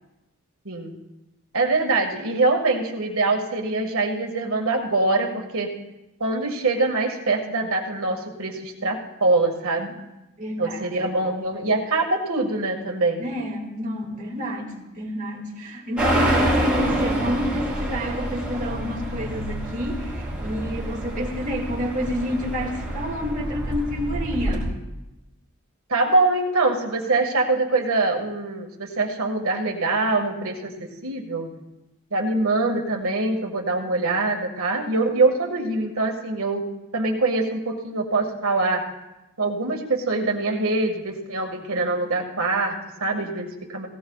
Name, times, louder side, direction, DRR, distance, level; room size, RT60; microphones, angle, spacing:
voice 1, 0.6-0.9 1.5-5.7 6.2-9.9 10.6-13.2 25.9-31.5 32.1-36.7 36.9-38.8 39.4-43.9, right 3 dB, 70° right, 2 dB, 1.8 m, -24 dB
voice 2, 10.4-11.1 13.2-24.7, equal, 35° right, -1 dB, 2.2 m, -29 dB
sound 1, 16.0-24.7, right 1 dB, 5° right, 4.4 m, -27 dB
18.5 x 17.5 x 2.4 m, 0.99 s
head